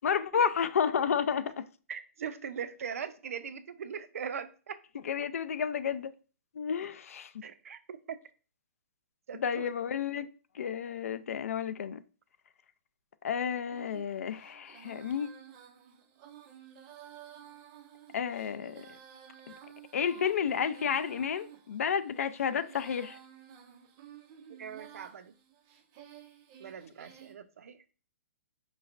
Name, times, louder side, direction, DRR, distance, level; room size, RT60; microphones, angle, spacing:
voice 1, 0.0-1.7 5.0-6.1 6.5-7.5 9.3-10.3 10.5-12.0 13.2-15.3 18.1-18.9 19.5-19.6 19.9-23.2, left 7 dB, 85° left, 0.4 m, -31 dB
voice 2, 1.9-4.8 7.4-8.2 9.3-9.7 24.6-25.3 26.6-27.8, right 7 dB, 80° right, 0.5 m, -40 dB
Female singing, 13.7-27.3, right 9 dB, 20° right, 0.3 m, -53 dB
5.0 x 3.1 x 2.5 m
hypercardioid pair, 175°, 8 cm